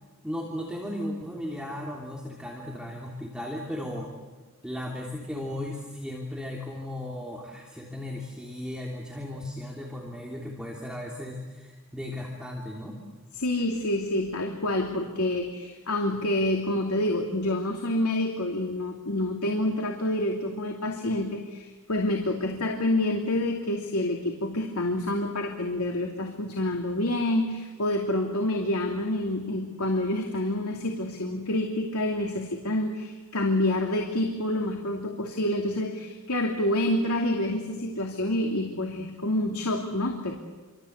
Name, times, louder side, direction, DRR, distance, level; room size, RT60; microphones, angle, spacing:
voice 1, 0.2-4.1 4.6-13.0, left 1 dB, 5° right, -2 dB, 3.2 m, -36 dB
voice 2, 13.4-40.3, left 1 dB, 85° left, 2 dB, 2.8 m, -28 dB
28.5 x 25.5 x 8.2 m, 1.3 s
head